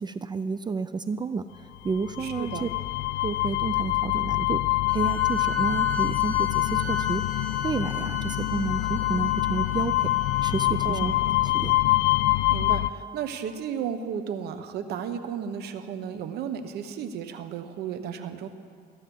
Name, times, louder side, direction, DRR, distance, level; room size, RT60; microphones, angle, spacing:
voice 1, 0.0-2.7 3.2-7.2 7.6-10.1 10.4-11.1 11.4-11.7, right 5 dB, 25° right, 12 dB, 0.4 m, -31 dB
sound 1, 1.9-12.9, left 17 dB, 80° left, 0.4 m, -25 dB
voice 2, 2.2-2.7 10.8-11.2 12.5-18.5, right 8 dB, 75° right, 9 dB, 1.1 m, -34 dB
sound 2, 4.9-10.6, left 1 dB, 5° left, 2.2 m, -37 dB
15.0 x 9.5 x 7.8 m, 2.2 s
cardioid pair, 110°, 17 cm